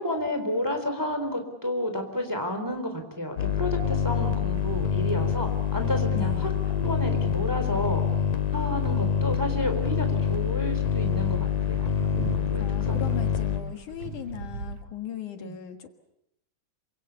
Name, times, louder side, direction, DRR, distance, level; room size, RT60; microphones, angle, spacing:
voice 1, 0.0-8.0 8.5-11.9 12.3-12.6 12.9-13.0 15.4-15.5, left 1 dB, 5° right, 5 dB, 3.2 m, -31 dB
sound 1, 3.4-13.6, left 7 dB, 90° left, 3.7 m, -26 dB
sound 2, 4.3-14.8, right 4 dB, 50° right, 1.9 m, -42 dB
voice 2, 6.2-6.5 8.9-9.2 12.6-16.0, left 10 dB, 70° left, 7 dB, 3.1 m, -38 dB
28.0 x 25.5 x 6.9 m, 0.81 s
omnidirectional pair, 3.7 m